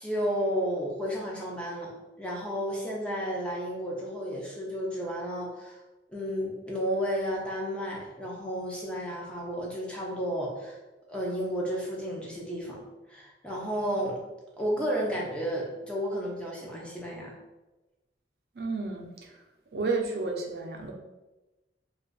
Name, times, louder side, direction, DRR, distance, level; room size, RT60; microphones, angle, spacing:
voice 1, 0.0-5.8 6.1-10.8 11.1-12.8 13.1-14.2 14.6-17.3, equal, 5° left, -4 dB, 0.5 m, -32 dB
voice 2, 18.6-19.4 19.7-20.9, right 3 dB, 60° right, 1 dB, 0.5 m, -32 dB
2.4 x 2.4 x 3.8 m, 1.1 s
head